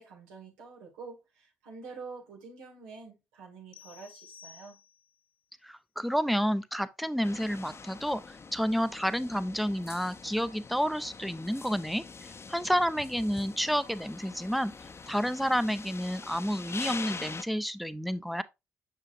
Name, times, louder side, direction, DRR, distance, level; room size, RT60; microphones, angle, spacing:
voice 1, 0.0-4.8, right 4 dB, 85° right, 2.0 m, -47 dB
sound 1, 3.7-5.3, left 6 dB, 75° left, 0.6 m, -53 dB
voice 2, 5.6-12.0 12.5-14.7 15.1-18.4, equal, ahead, 0.7 m, -30 dB
sound 2, 7.2-17.4, left 4 dB, 35° left, 0.7 m, -44 dB
6.9 x 5.7 x 2.6 m
hypercardioid pair, 45°, 7 cm